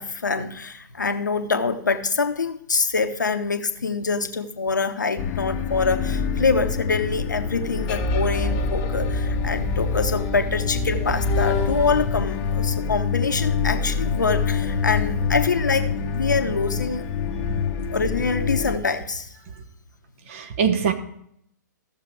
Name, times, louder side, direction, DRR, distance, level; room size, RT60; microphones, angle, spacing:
voice 1, 0.0-17.0 17.9-19.3, left 4 dB, 75° left, 8 dB, 1.1 m, -25 dB
sound 1, 5.2-18.8, left 5 dB, 30° left, 1.0 m, -25 dB
voice 2, 20.3-20.9, right 7 dB, 45° right, 7 dB, 1.3 m, -23 dB
15.0 x 6.7 x 4.6 m, 0.70 s
figure-of-eight pair, 120°, 10 cm